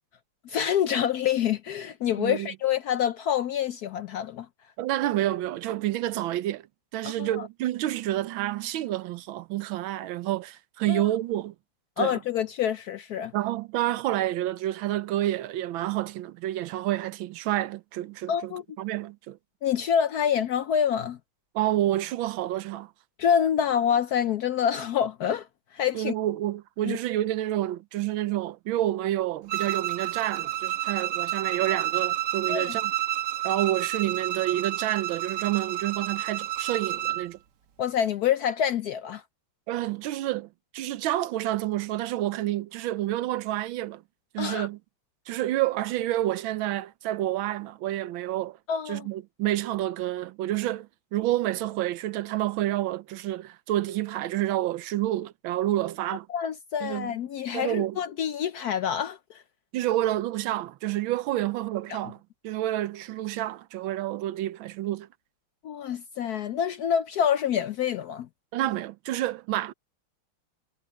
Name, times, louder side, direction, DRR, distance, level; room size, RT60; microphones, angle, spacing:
voice 1, 0.4-4.5 7.0-7.5 10.9-11.0 12.0-13.3 18.3-18.6 19.6-21.2 23.2-25.5 25.7-26.1 26.8-27.0 32.5-32.7 37.8-39.2 44.4-44.7 48.7-49.1 56.3-59.4 61.9-62.0 65.6-68.3, left 9 dB, 70° left, 0.9 m, -27 dB
voice 2, 2.2-2.5 4.8-6.7 6.9-11.5 12.0-12.2 13.3-19.4 21.5-22.9 25.9-32.9 33.4-37.4 39.7-44.0 44.3-44.8 45.3-48.6 48.9-56.3 56.8-57.1 57.5-58.0 59.7-62.2 62.4-65.1 68.5-69.7, right 14 dB, 80° right, 1.5 m, -29 dB
Bowed string instrument, 29.5-37.3, right 13 dB, 60° right, 1.5 m, -30 dB
omnidirectional pair, 2.2 m